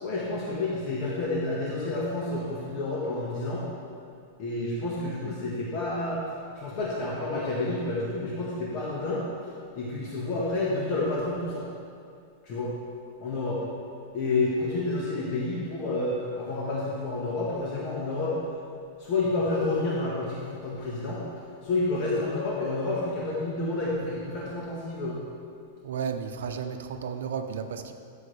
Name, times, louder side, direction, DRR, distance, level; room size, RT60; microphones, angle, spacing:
voice 1, 0.0-3.7 4.4-9.2 9.7-11.6 12.4-12.7 13.2-13.6 14.1-18.4 19.0-21.2 21.6-25.2, left 2 dB, 40° left, -6 dB, 1.6 m, -29 dB
voice 2, 25.8-27.9, right 6 dB, 80° right, 6 dB, 0.7 m, -33 dB
12.5 x 7.2 x 3.4 m, 2.3 s
supercardioid pair, 160°, 0 cm